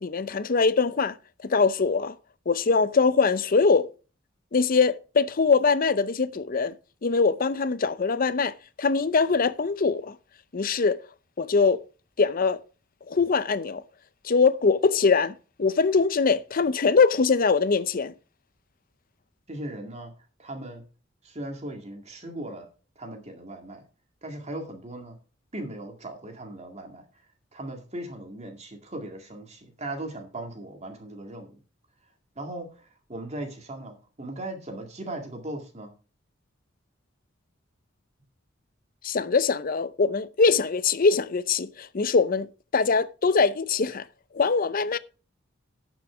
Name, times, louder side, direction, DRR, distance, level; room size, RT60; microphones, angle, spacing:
voice 1, 0.0-1.1 1.4-2.1 2.5-3.9 4.5-6.7 7.0-10.1 10.5-11.0 11.4-11.8 12.2-12.6 13.1-13.8 14.2-15.3 15.6-18.1 39.0-42.5 42.7-44.0 44.3-45.0, left 4 dB, 45° left, 0.6 m, -22 dB
voice 2, 19.5-20.1 20.4-20.8 21.2-22.7 23.0-23.8 24.2-25.2 25.5-27.0 27.5-31.6 32.4-35.9, right 1 dB, 35° right, 2.1 m, -38 dB
12.0 x 6.0 x 4.9 m
head